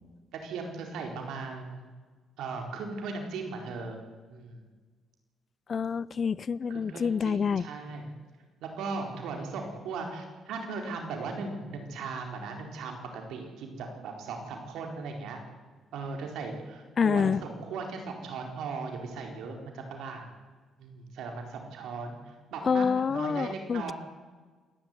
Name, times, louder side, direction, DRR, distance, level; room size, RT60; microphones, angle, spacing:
voice 1, 0.3-1.9 2.4-4.0 4.3-4.6 6.7-8.0 8.6-15.4 15.9-20.3 20.8-23.9, right 4 dB, 85° right, 3 dB, 4.5 m, -38 dB
voice 2, 5.7-7.7 17.0-17.4 22.7-23.9, left 6 dB, 45° left, 21 dB, 0.5 m, -27 dB
26.5 x 12.0 x 9.7 m, 1.4 s
cardioid pair, 90°, 0 cm